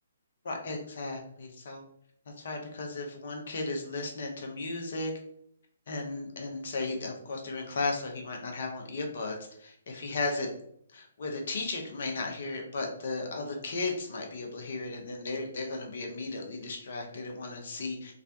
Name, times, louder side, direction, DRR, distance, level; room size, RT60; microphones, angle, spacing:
voice 1, 0.4-1.8 2.4-5.1 5.9-10.5 10.9-18.1, left 3 dB, 55° left, 2 dB, 0.6 m, -35 dB
2.4 x 2.1 x 2.7 m, 0.68 s
figure-of-eight pair, 130°, 0 cm